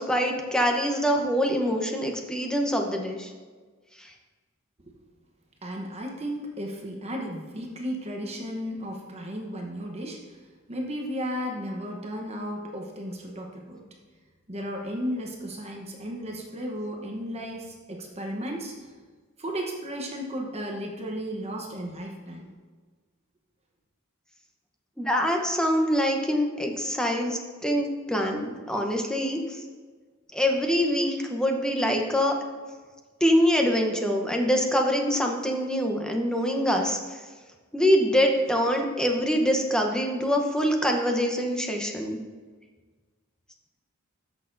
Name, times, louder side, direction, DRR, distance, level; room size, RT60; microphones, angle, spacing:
voice 1, 0.0-3.3 4.0-4.1 25.0-29.4 30.3-32.4 33.2-37.0 37.7-42.2, equal, 5° left, 2 dB, 0.9 m, -24 dB
voice 2, 5.6-10.4 10.7-13.8 14.5-18.9 19.4-22.5, equal, 30° right, 1 dB, 1.0 m, -34 dB
13.5 x 6.5 x 2.7 m, 1.4 s
head